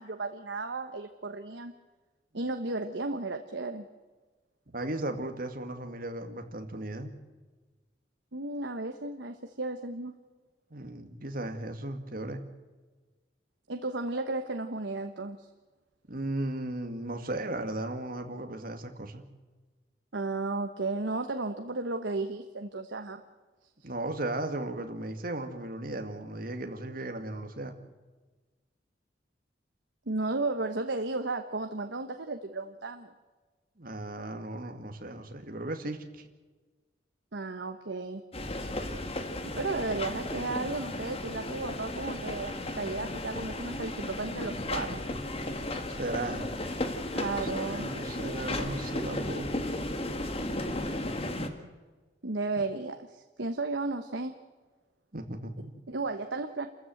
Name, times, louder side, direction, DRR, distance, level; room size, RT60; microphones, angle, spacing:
voice 1, 0.0-1.7 2.3-3.9 8.3-10.1 13.7-15.5 20.1-23.2 30.1-33.1 37.3-38.2 39.5-45.0 47.1-47.9 52.2-54.3 55.9-56.7, right 3 dB, 80° right, 7 dB, 1.2 m, -34 dB
voice 2, 4.7-7.1 10.7-12.4 16.1-19.2 23.8-27.7 33.8-36.2 45.9-46.5 47.2-49.5 55.1-55.7, right 1 dB, 55° right, 5 dB, 2.3 m, -36 dB
sound 1, 38.3-51.5, left 1 dB, 35° left, 1.9 m, -34 dB
28.5 x 14.5 x 7.8 m, 1.3 s
head